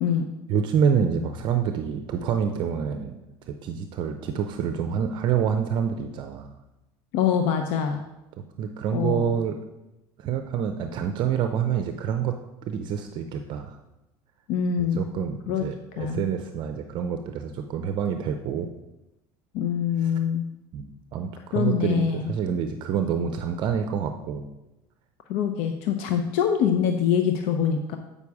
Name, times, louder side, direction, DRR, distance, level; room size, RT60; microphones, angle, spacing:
voice 1, 0.5-3.2 3.5-6.5 8.6-9.5 10.2-12.3 12.7-13.7 14.8-18.7 20.0-20.1 20.7-24.5, right 7 dB, 50° right, 7 dB, 0.6 m, -27 dB
voice 2, 7.1-8.0 8.9-9.4 14.5-15.0 15.5-15.7 16.0-16.2 19.5-20.4 21.5-22.2 25.3-28.0, left 8 dB, 75° left, 6 dB, 0.6 m, -24 dB
8.4 x 5.4 x 4.7 m, 0.97 s
supercardioid pair, 125°, 10 cm